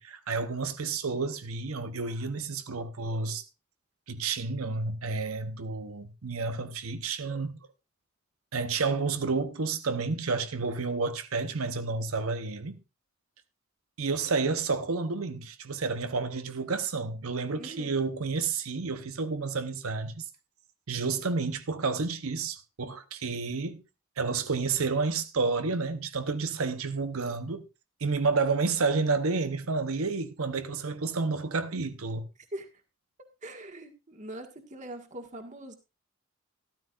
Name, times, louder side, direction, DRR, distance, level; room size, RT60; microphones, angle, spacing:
voice 1, 0.0-3.5 4.1-7.6 8.5-12.8 14.0-20.3 20.9-23.8 24.2-27.7 28.0-32.3, right 4 dB, 90° right, 0.9 m, -30 dB
voice 2, 17.6-18.0 32.5-32.7 33.4-35.8, right 1 dB, 35° right, 1.6 m, -42 dB
13.5 x 12.5 x 2.5 m
head